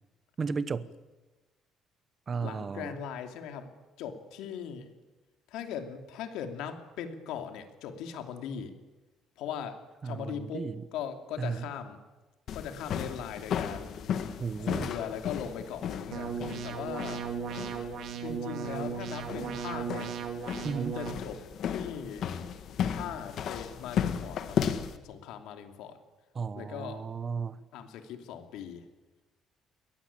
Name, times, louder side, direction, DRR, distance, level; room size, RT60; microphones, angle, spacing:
voice 1, 0.4-0.9 2.3-3.0 10.0-10.9 11.4-11.7 14.4-14.9 20.6-21.0 26.3-27.6, right 5 dB, 25° right, 15 dB, 0.9 m, -34 dB
voice 2, 2.4-3.7 4.0-4.9 5.5-8.7 9.4-12.0 12.5-14.0 14.6-16.3 16.6-17.3 18.2-20.1 20.9-22.3 22.9-24.8 25.0-26.0 26.6-27.1 27.7-28.9, left 8 dB, 90° left, 6 dB, 2.8 m, -39 dB
sound 1, 12.5-25.0, left 8 dB, 50° left, 1.6 m, -35 dB
sound 2, 16.1-21.1, right 7 dB, 50° right, 2.3 m, -36 dB
22.5 x 18.5 x 8.8 m, 1.2 s
cardioid pair, 175°, 0 cm